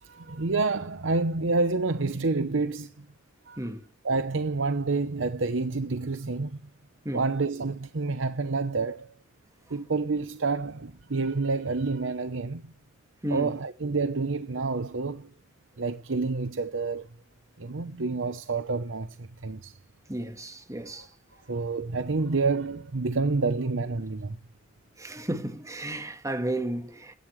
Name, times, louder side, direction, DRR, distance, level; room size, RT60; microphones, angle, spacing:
voice 1, 0.0-3.1 3.5-3.6 4.0-6.6 7.1-9.1 9.7-12.7 13.3-15.3 15.8-17.1 17.6-19.8 20.8-21.1 21.5-24.4, right 3 dB, 80° right, 0.9 m, -28 dB
voice 2, 20.1-21.1 25.0-27.1, right 1 dB, 15° right, 1.5 m, -33 dB
16.5 x 11.5 x 3.2 m
head